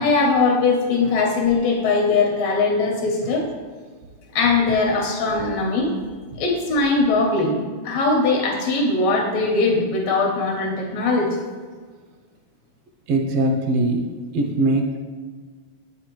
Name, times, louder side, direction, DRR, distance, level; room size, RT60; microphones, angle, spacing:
voice 1, 0.0-3.5 4.3-5.9 6.4-11.4, left 3 dB, 70° left, -1 dB, 2.0 m, -20 dB
voice 2, 13.1-14.1 14.3-15.0, right 2 dB, 75° right, 2 dB, 1.6 m, -21 dB
8.2 x 4.5 x 3.0 m, 1.5 s
omnidirectional pair, 3.3 m